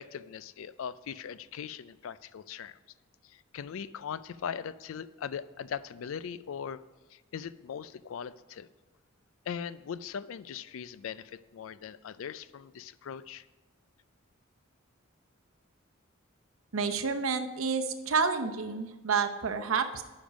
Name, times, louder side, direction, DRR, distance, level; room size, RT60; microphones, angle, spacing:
voice 1, 0.0-2.8 3.5-6.8 7.1-8.7 9.5-13.4, left 7 dB, 75° left, 16 dB, 0.4 m, -40 dB
voice 2, 16.7-20.0, right 5 dB, 85° right, 7 dB, 0.7 m, -29 dB
10.0 x 5.2 x 5.1 m, 1.2 s
head